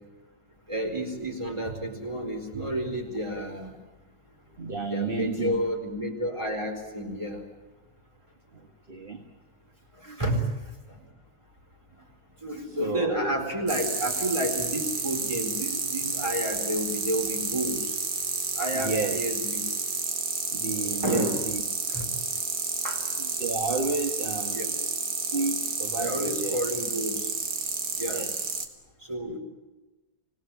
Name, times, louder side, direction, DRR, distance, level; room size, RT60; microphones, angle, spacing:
voice 1, 0.7-3.7 4.9-7.4 10.0-10.4 12.4-17.8 18.6-19.6 20.8-21.4 21.9-22.0 22.8-23.0 24.5-24.7 26.0-27.2 28.0-28.3 29.1-29.4, equal, 20° right, 2 dB, 4.5 m, -30 dB
voice 2, 4.6-5.6 8.5-9.2 10.1-10.2 12.8-13.4 18.7-19.2 20.5-21.6 23.2-24.9 25.3-26.6 28.1-28.4, right 4 dB, 35° right, 4 dB, 1.8 m, -31 dB
sound 1, 13.7-28.7, right 4 dB, 75° right, 2.3 m, -30 dB
26.0 x 18.0 x 9.0 m, 1.1 s
omnidirectional pair, 1.7 m